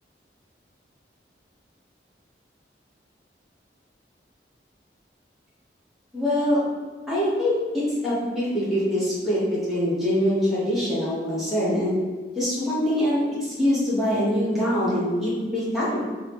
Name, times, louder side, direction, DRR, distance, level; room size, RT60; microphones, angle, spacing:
voice 1, 6.1-6.6 7.1-12.0 12.4-16.0, equal, ahead, -11 dB, 1.0 m, -24 dB
2.8 x 2.3 x 3.4 m, 1.4 s
head